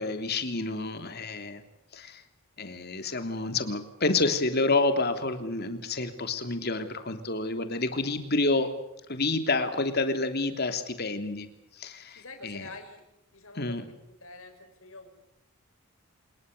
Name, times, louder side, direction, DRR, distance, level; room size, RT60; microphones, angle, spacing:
voice 1, 0.0-1.6 1.9-2.2 2.6-8.7 9.1-11.5 11.8-12.7 13.6-13.8, left 3 dB, 50° left, 8 dB, 3.2 m, -29 dB
voice 2, 12.1-13.0 13.3-13.8 14.2-15.1, left 3 dB, 70° left, 5 dB, 6.9 m, -45 dB
27.0 x 21.5 x 6.9 m, 0.83 s
head